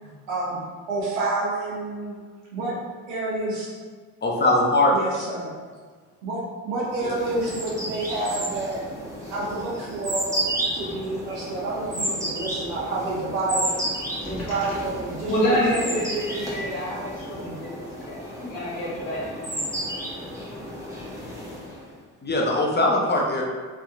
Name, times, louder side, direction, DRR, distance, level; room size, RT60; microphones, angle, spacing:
voice 1, 0.3-2.2 2.5-2.8 3.1-3.7 4.9-5.5 6.2-8.8 9.3-10.4 10.7-13.9 14.2-15.5 15.8-16.0 17.3-17.6, right 2 dB, 90° right, -5 dB, 0.9 m, -29 dB
voice 2, 4.2-4.9 7.0-7.2 22.2-23.4, left 2 dB, 20° left, -2 dB, 0.7 m, -21 dB
sound 1, 6.9-21.9, right 1 dB, 5° right, 0.9 m, -32 dB
voice 3, 14.2-14.8 15.3-19.6, equal, 75° left, -6 dB, 1.2 m, -28 dB
3.2 x 2.7 x 2.4 m, 1.5 s
hypercardioid pair, 50°, 50 cm